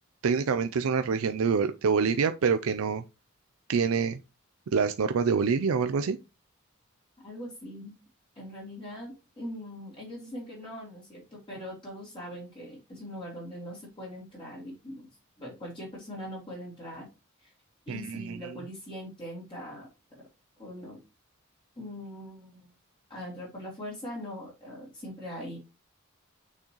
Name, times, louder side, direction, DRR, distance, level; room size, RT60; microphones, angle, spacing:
voice 1, 0.2-3.0 3.7-4.2 4.7-6.2 17.9-18.4, right 5 dB, 80° right, 0.4 m, -26 dB
voice 2, 7.2-8.0 8.3-15.1 15.4-17.1 17.4-17.5 17.9-20.2 20.6-21.0 21.8-22.7 23.1-25.6, equal, 25° left, 3.3 m, -41 dB
6.4 x 6.1 x 3.0 m
head